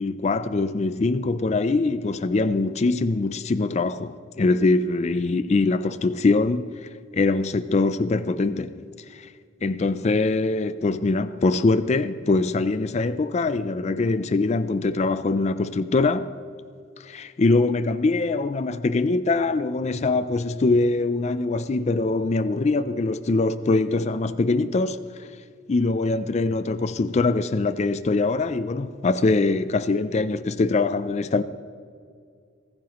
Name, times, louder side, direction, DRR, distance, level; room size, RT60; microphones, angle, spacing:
voice 1, 0.0-6.7 7.1-8.8 9.1-9.3 9.6-16.3 17.0-25.0 25.7-31.4, left 3 dB, 35° left, 0.4 m, -23 dB
27.5 x 9.7 x 3.0 m
head